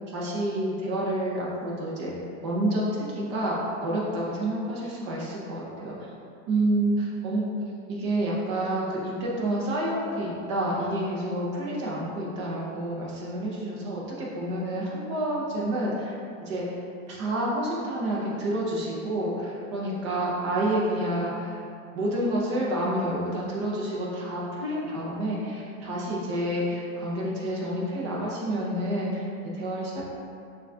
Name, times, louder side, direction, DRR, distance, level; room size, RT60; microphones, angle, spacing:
voice 1, 0.1-2.1 2.4-6.0 6.5-7.4 7.9-16.8 17.1-21.6 21.9-30.0, right 1 dB, 25° right, -5 dB, 0.4 m, -29 dB
5.8 x 2.3 x 3.6 m, 2.5 s
supercardioid pair, 175°, 42 cm